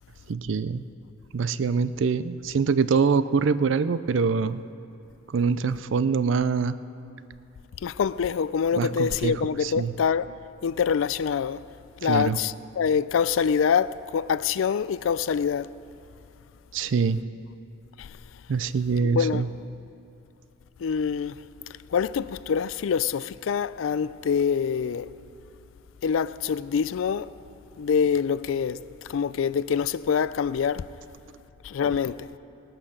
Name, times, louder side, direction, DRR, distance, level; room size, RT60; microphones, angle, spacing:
voice 1, 0.3-0.8 1.3-4.6 5.3-6.8 8.7-9.9 12.0-12.4 16.7-17.2 18.5-19.5 31.8-32.0, right 5 dB, 65° right, 0.4 m, -24 dB
voice 2, 7.8-10.3 10.6-11.6 12.0-15.7 18.0-18.1 19.0-19.5 20.8-21.3 21.9-25.1 26.0-27.3 27.8-28.8 29.1-30.8 31.6-32.3, left 7 dB, 75° left, 0.4 m, -25 dB
18.0 x 8.9 x 6.6 m
head